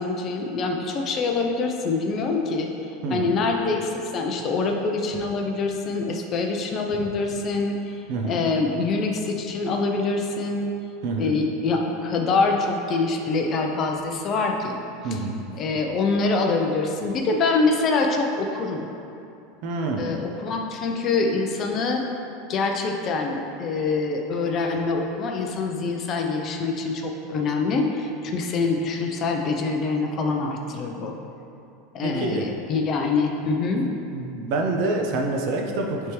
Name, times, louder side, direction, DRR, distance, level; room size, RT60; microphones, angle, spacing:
voice 1, 0.0-2.7 3.1-10.7 11.2-14.8 15.1-15.2 15.6-18.9 20.0-22.0 22.5-31.1 31.9-33.8, left 3 dB, 30° left, 2 dB, 0.5 m, -25 dB
voice 2, 11.0-11.3 15.0-15.3 19.6-20.1 32.0-32.4 34.1-36.1, right 2 dB, 55° right, 1 dB, 0.7 m, -26 dB
9.6 x 3.5 x 3.1 m, 2.6 s
supercardioid pair, 155°, 0 cm